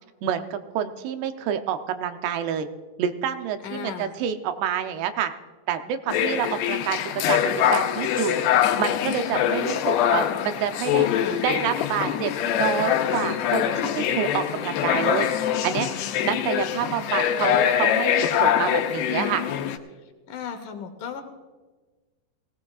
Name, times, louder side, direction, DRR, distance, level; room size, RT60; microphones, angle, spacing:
voice 1, 0.2-2.7 3.0-5.3 5.7-11.1 11.4-15.3 15.6-15.9 16.2-19.4, right 9 dB, 85° right, 8 dB, 2.9 m, -28 dB
voice 2, 3.6-4.2 10.9-11.8 20.3-21.2, left 7 dB, 65° left, 6 dB, 2.3 m, -35 dB
sound 1, 6.1-19.8, left 10 dB, 90° left, 2.8 m, -24 dB
20.0 x 17.0 x 2.4 m, 1.3 s
omnidirectional pair, 4.7 m